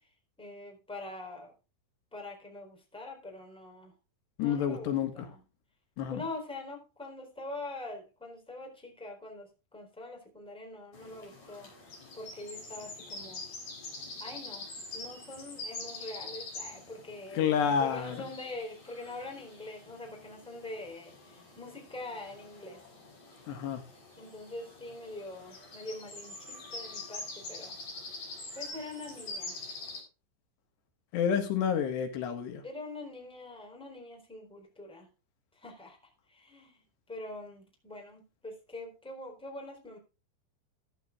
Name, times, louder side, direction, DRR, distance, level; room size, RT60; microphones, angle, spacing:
voice 1, 0.4-1.5 2.1-3.9 4.4-5.4 6.0-11.7 12.1-13.4 14.2-14.7 14.9-22.8 24.2-27.8 28.5-29.6 32.6-35.1 35.5-36.0 36.3-36.8 37.1-40.0, left 2 dB, ahead, 3.5 m, -44 dB
voice 2, 4.4-5.1 6.0-6.2 17.4-18.2 23.5-23.8 31.1-32.6, left 8 dB, 75° left, 3.7 m, -29 dB
sound 1, 10.9-30.0, left 3 dB, 45° left, 8.4 m, -45 dB
14.5 x 11.5 x 2.5 m
omnidirectional pair, 5.0 m